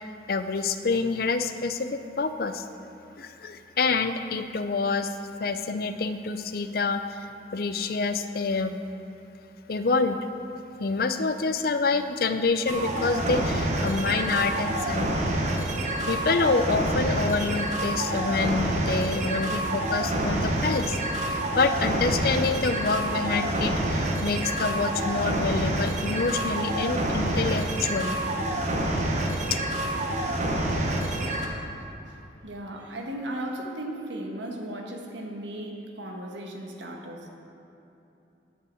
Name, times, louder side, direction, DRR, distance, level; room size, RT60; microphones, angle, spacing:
voice 1, 0.3-2.6 3.2-5.1 5.4-7.2 7.5-8.8 9.7-10.2 10.8-15.1 16.1-20.9 21.3-28.2 29.5-29.6, left 4 dB, 55° left, 9 dB, 0.5 m, -27 dB
sound 1, 12.7-31.5, right 1 dB, 40° right, 0.9 m, -27 dB
voice 2, 32.4-37.3, right 1 dB, 85° right, 1 dB, 1.4 m, -36 dB
9.4 x 5.6 x 7.7 m, 2.9 s
head